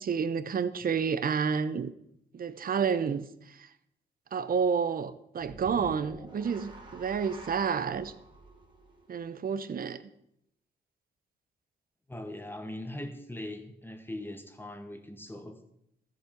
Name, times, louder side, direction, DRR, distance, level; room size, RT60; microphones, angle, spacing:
voice 1, 0.0-1.9 2.3-3.7 4.3-8.1 9.1-10.0, right 6 dB, 50° right, 14 dB, 0.8 m, -30 dB
sound 1, 5.4-9.7, right 2 dB, 25° right, 2.2 m, -48 dB
voice 2, 12.1-15.6, left 1 dB, 10° left, 6 dB, 1.2 m, -40 dB
13.5 x 7.5 x 5.2 m, 0.77 s
cardioid pair, 90°, 19 cm